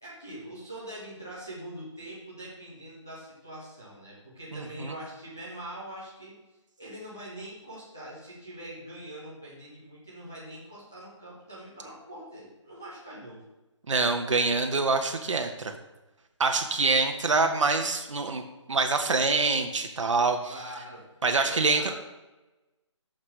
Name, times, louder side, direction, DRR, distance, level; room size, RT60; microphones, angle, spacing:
voice 1, 0.0-6.4 6.8-13.4 20.5-22.0, right 1 dB, 5° left, -8 dB, 0.4 m, -43 dB
voice 2, 4.5-4.9 13.9-15.7 16.4-18.4 18.7-20.5 21.2-22.0, right 3 dB, 70° right, 5 dB, 0.9 m, -25 dB
9.6 x 6.5 x 3.2 m, 1.1 s
hypercardioid pair, 180°, 16 cm